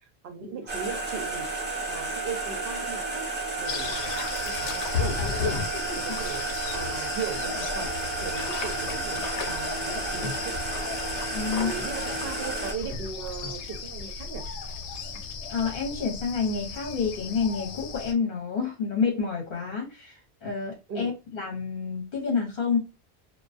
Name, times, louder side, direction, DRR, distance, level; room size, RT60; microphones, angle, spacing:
voice 1, 0.2-1.5 1.9-3.3 3.6-5.6 5.9-6.5 6.7-7.9 8.2-10.6 11.5-14.4 20.9-21.1, right 6 dB, 65° right, 6 dB, 0.8 m, -38 dB
sound 1, 0.7-12.7, right 3 dB, 10° right, 0.6 m, -32 dB
sound 2, 3.6-18.1, left 5 dB, 85° left, 0.9 m, -35 dB
voice 2, 11.3-11.7 15.5-22.8, left 5 dB, 60° left, -1 dB, 1.0 m, -29 dB
2.2 x 2.2 x 2.5 m, 0.27 s
omnidirectional pair, 1.1 m